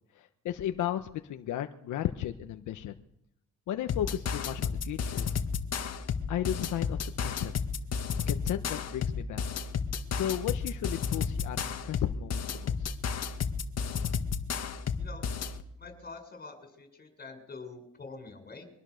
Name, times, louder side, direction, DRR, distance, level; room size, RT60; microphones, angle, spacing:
voice 1, 0.1-2.9 3.7-5.3 6.3-7.6 8.3-9.4 10.1-12.9, left 11 dB, 80° left, 6 dB, 1.2 m, -34 dB
sound 1, 3.9-15.6, left 6 dB, 55° left, 1.9 m, -33 dB
voice 2, 15.8-18.7, left 4 dB, 30° left, 5 dB, 7.0 m, -46 dB
24.0 x 19.0 x 6.6 m, 0.78 s
cardioid pair, 90°, 30 cm